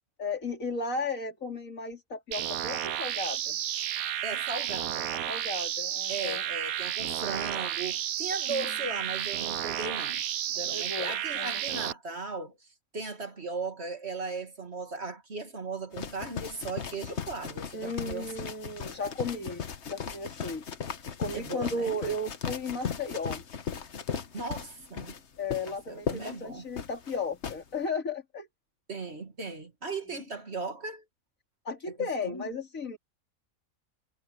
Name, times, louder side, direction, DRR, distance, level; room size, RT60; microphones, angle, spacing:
voice 1, 0.2-3.6 5.1-6.4 8.5-8.7 10.7-11.6 17.7-20.6 21.2-23.4 25.4-28.5 31.7-33.0, left 3 dB, 70° left, 3.7 m, -35 dB
sound 1, 2.3-11.9, right 11 dB, 90° right, 1.2 m, -32 dB
voice 2, 4.2-5.1 6.1-10.2 10.5-12.6 12.9-18.5 21.3-22.0 24.3-25.2 25.7-26.7 28.9-31.0 32.0-32.5, right 3 dB, 50° right, 2.6 m, -37 dB
sound 2, 15.9-27.6, left 7 dB, 55° left, 1.4 m, -37 dB
omnidirectional pair, 1.4 m